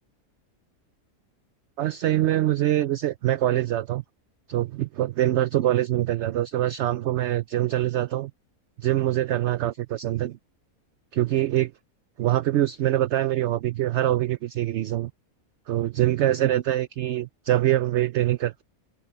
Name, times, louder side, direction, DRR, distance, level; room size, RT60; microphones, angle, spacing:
voice 1, 1.8-4.0 4.5-8.3 8.8-10.4 11.1-11.7 12.2-15.1 15.7-18.6, right 13 dB, 65° right, 0.7 m, -24 dB
open air
omnidirectional pair, 1.5 m